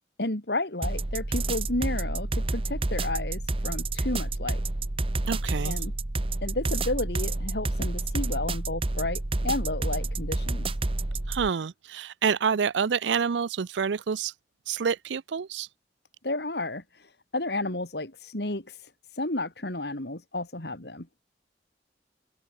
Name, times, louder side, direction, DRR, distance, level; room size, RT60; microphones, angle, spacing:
voice 1, 0.2-4.6 5.6-5.9 6.4-10.7 16.2-18.8 19.1-21.1, left 2 dB, 70° left, 3.0 m, -32 dB
sound 1, 0.8-11.5, right 2 dB, 30° right, 0.9 m, -29 dB
voice 2, 5.3-5.8 11.3-14.3 14.7-15.7, right 6 dB, 90° right, 0.5 m, -28 dB
open air
head